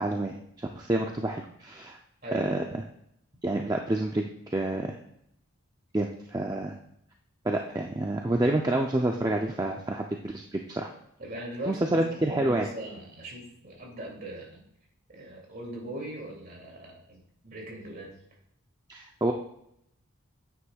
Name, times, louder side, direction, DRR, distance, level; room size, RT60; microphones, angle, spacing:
voice 1, 0.0-2.0 2.3-2.6 3.4-4.2 4.5-5.0 5.9-6.7 7.4-10.9 11.7-12.7 18.9-19.3, right 1 dB, 15° right, 2 dB, 0.5 m, -28 dB
voice 2, 2.2-2.6 11.2-14.6 15.1-18.2, right 1 dB, 45° right, -1 dB, 2.6 m, -40 dB
9.7 x 8.6 x 2.3 m, 0.73 s
head